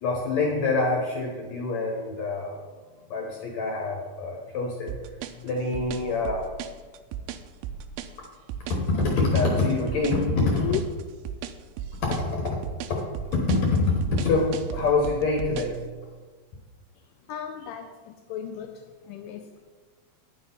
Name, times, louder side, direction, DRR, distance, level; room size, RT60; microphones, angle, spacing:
voice 1, 0.0-2.6 3.1-5.0 5.4-6.5 8.7-10.7 12.0-12.6 12.9-13.0 13.3-15.8, left 3 dB, 65° left, 0 dB, 1.9 m, -25 dB
sound 1, 4.9-15.8, right 9 dB, 85° right, 2.4 m, -36 dB
voice 2, 17.3-19.6, left 11 dB, 90° left, 6 dB, 1.9 m, -35 dB
10.5 x 6.3 x 5.4 m, 1.4 s
omnidirectional pair, 4.4 m